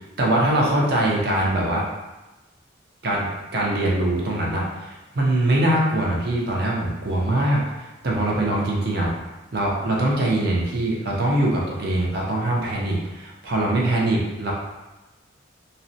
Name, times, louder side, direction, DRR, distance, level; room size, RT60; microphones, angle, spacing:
voice 1, 0.2-1.8 3.0-9.1 9.5-14.5, right 1 dB, 55° right, -3 dB, 0.6 m, -22 dB
2.6 x 2.1 x 2.6 m, 1.1 s
head